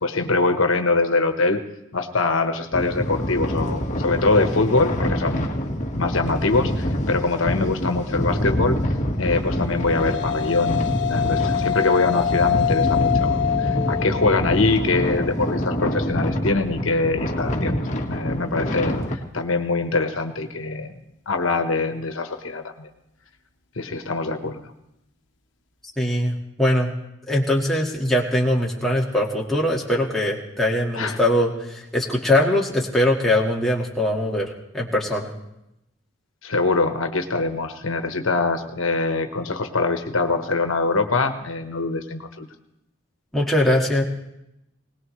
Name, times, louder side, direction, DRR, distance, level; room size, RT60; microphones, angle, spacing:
voice 1, 0.0-1.6 1.9-5.5 5.9-8.8 9.2-20.9 21.3-22.9 23.8-24.7 30.9-31.2 36.4-42.5, left 3 dB, 80° left, 6 dB, 1.2 m, -23 dB
sound 1, 2.7-19.1, equal, 35° left, 1.5 m, -26 dB
sound 2, 9.4-18.0, left 9 dB, 60° left, 1.2 m, -27 dB
voice 2, 26.0-26.9 27.3-35.3 43.3-44.0, left 1 dB, ahead, -3 dB, 1.8 m, -21 dB
21.0 x 19.0 x 3.2 m, 0.85 s
head